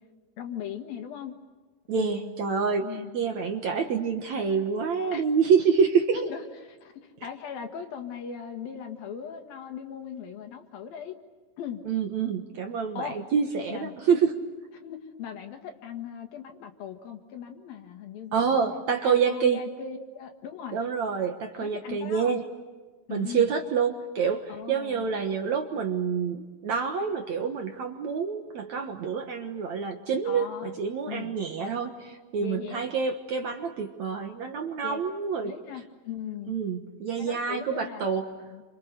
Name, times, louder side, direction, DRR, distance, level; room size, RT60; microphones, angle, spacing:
voice 1, 0.4-1.4 1.9-3.2 5.1-5.3 6.1-11.2 11.6-11.8 13.0-13.2 13.7-14.0 14.8-20.8 21.5-22.4 23.1-23.5 24.5-25.1 30.3-30.8 31.1-31.3 32.4-32.8 34.8-35.0 35.4-36.6 37.2-38.6, left 8 dB, 65° left, 5 dB, 3.3 m, -39 dB
voice 2, 1.9-6.2 11.9-14.4 18.3-19.6 20.7-22.4 23.1-35.5 36.5-38.2, right 6 dB, 60° right, 5 dB, 2.0 m, -27 dB
29.0 x 26.5 x 6.7 m, 1.3 s
omnidirectional pair, 4.7 m